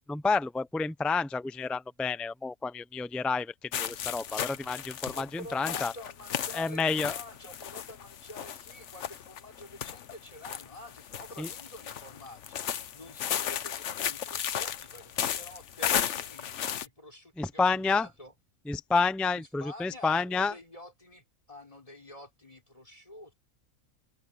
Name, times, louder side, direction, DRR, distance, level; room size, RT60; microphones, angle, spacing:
voice 1, 0.1-5.9 6.5-7.1 11.4-11.5 17.4-18.1 18.7-20.5, left 4 dB, ahead, 0.4 m, -29 dB
sound 1, 3.7-16.9, left 9 dB, 60° left, 1.1 m, -35 dB
voice 2, 5.1-18.3 19.3-23.4, left 2 dB, 25° left, 4.1 m, -48 dB
omnidirectional pair, 1.5 m